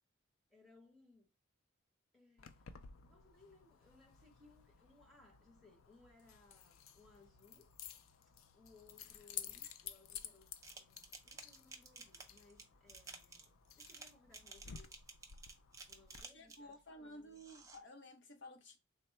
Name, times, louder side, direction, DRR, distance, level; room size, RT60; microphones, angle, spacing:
voice 1, 0.5-1.3 2.1-2.7 3.0-7.7 8.5-14.9 15.9-17.4, left 3 dB, ahead, 1.0 m, -66 dB
Keys jangling, 2.4-16.2, left 8 dB, 85° left, 0.4 m, -54 dB
sound 1, 10.6-16.7 17.3-17.8, right 4 dB, 15° right, 0.4 m, -54 dB
voice 2, 16.3-18.8, left 1 dB, 60° left, 0.9 m, -54 dB
3.6 x 2.1 x 4.3 m
head